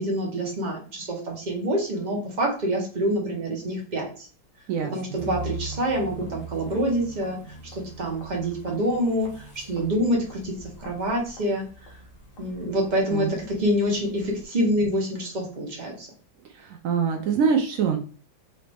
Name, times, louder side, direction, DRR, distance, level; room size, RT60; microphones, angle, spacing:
voice 1, 0.0-4.3 4.9-11.7 12.4-16.1, equal, 30° right, 0 dB, 0.9 m, -26 dB
voice 2, 4.7-5.2 13.1-13.3 16.6-18.0, right 6 dB, 85° right, 3 dB, 0.7 m, -24 dB
sound 1, 5.1-14.4, right 2 dB, 45° left, 1.4 m, -42 dB
4.0 x 3.1 x 3.4 m, 0.39 s
omnidirectional pair, 2.1 m